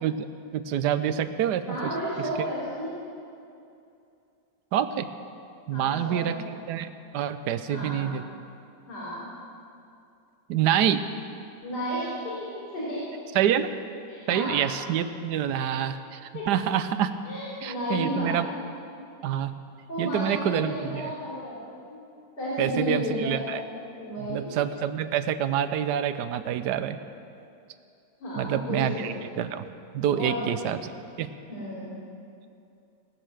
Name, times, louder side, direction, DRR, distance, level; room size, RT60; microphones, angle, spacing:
voice 1, 0.5-1.9 4.7-5.1 5.7-6.4 6.7-8.2 10.5-11.0 13.3-13.7 14.3-16.2 16.5-17.1 17.6-18.5 19.2-19.5 20.0-21.1 22.6-23.6 24.3-27.0 28.4-29.7 29.9-30.9 31.2-31.3, right 9 dB, 75° right, 11 dB, 1.2 m, -27 dB
voice 2, 1.7-2.9 5.7-6.4 7.6-8.1 8.9-9.2 11.6-12.3 12.7-13.0 14.1-14.5 15.5-15.7 16.3-16.4 17.3-18.4 19.9-22.0 22.4-23.5 24.0-24.5 28.2-29.1 30.1-30.6 31.5-31.9, equal, 70° left, -9 dB, 4.1 m, -32 dB
19.0 x 6.6 x 7.7 m, 2.6 s
omnidirectional pair, 1.9 m